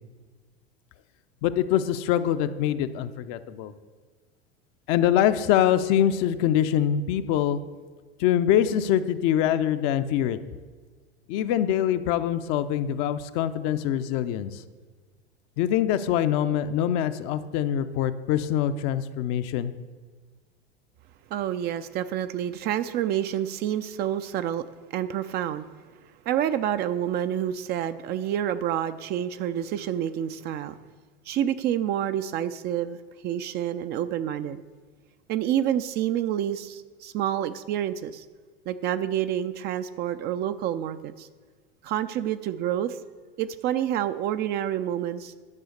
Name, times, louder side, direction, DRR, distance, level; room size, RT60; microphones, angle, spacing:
voice 1, 1.4-3.7 4.9-7.6 8.2-10.4 11.3-14.6 15.6-19.7, left 10 dB, 45° left, 10 dB, 0.6 m, -24 dB
voice 2, 21.3-24.7 24.9-25.7 26.3-30.7 31.3-33.0 33.2-34.6 35.3-38.2 38.7-41.3 41.8-43.0 43.4-45.3, right 10 dB, 35° right, 11 dB, 0.4 m, -28 dB
11.0 x 6.3 x 6.5 m, 1.5 s
figure-of-eight pair, 80°, 31 cm